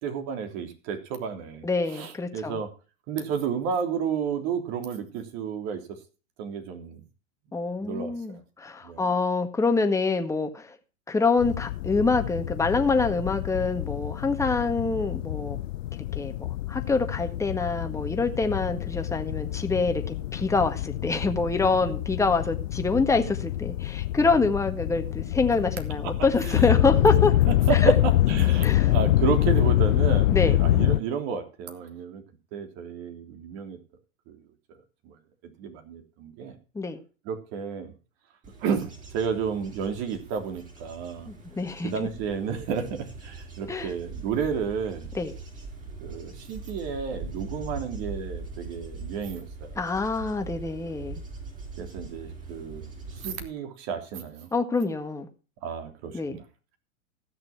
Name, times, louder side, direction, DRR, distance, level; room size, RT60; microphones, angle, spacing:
voice 1, 0.0-2.7 3.1-5.8 6.4-7.0 7.8-8.1 8.8-9.1 26.0-26.1 26.4-26.8 27.5-27.8 28.3-32.2 32.5-33.8 34.3-34.4 35.0-35.1 35.6-36.6 37.3-37.9 38.6-41.3 41.8-45.1 46.0-49.7 51.8-54.5 55.6-56.4, right 7 dB, 40° right, 3.4 m, -32 dB
voice 2, 1.6-2.6 7.5-10.7 11.1-15.6 16.1-27.3 27.7-27.9 28.6-28.9 30.3-30.6 36.7-37.0 41.3-42.1 43.7-43.9 45.1-45.3 49.7-51.2 54.5-55.3 56.1-56.4, left 4 dB, 5° left, 1.7 m, -26 dB
sound 1, 11.4-31.0, left 14 dB, 70° left, 0.5 m, -26 dB
Bird / Insect / Wind, 38.4-53.5, right 3 dB, 20° right, 5.3 m, -41 dB
15.5 x 6.7 x 5.9 m
hypercardioid pair, 110°, 39 cm